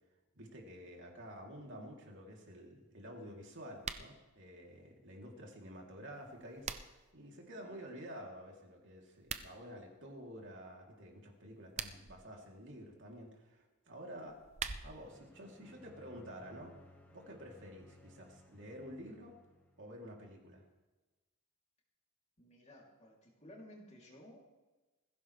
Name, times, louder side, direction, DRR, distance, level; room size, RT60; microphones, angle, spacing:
voice 1, 0.3-6.8 7.1-14.4 14.8-16.8 17.1-19.4 19.8-20.6, equal, 55° right, 0 dB, 3.1 m, -50 dB
sound 1, 3.7-4.1 6.1-7.1 9.1-9.5 11.5-12.2 14.2-15.1, right 6 dB, 30° right, 0.6 m, -43 dB
sound 2, 15.0-20.2, left 1 dB, 5° left, 1.2 m, -60 dB
voice 2, 22.4-24.4, left 1 dB, 30° left, -2 dB, 3.1 m, -56 dB
21.0 x 15.5 x 3.4 m, 1.2 s
head